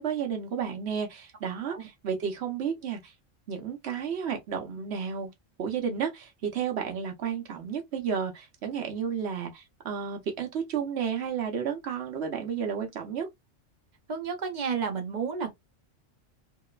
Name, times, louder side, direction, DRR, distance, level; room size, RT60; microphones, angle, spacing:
voice 1, 0.0-3.1 3.5-5.3 5.6-13.3, right 7 dB, 65° right, 1.0 m, -32 dB
voice 2, 14.1-15.5, right 6 dB, 45° right, 0.7 m, -31 dB
2.9 x 2.0 x 2.3 m
omnidirectional pair, 1.2 m